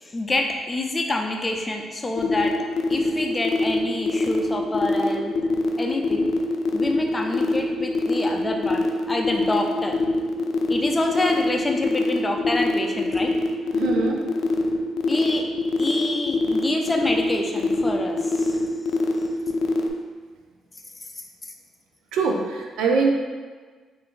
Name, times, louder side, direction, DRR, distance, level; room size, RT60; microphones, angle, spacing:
voice 1, 0.0-2.5 2.9-5.4 5.8-6.3 6.7-10.0 10.7-13.3 15.1-15.5 15.8-18.6 21.2-21.5, left 2 dB, 20° left, 2 dB, 0.5 m, -27 dB
sound 1, 2.2-19.9, left 2 dB, 80° left, 0.3 m, -23 dB
voice 2, 13.7-14.2 22.1-23.1, right 4 dB, 90° right, 1 dB, 0.5 m, -23 dB
3.3 x 2.6 x 3.7 m, 1.4 s
cardioid pair, 90°, 0 cm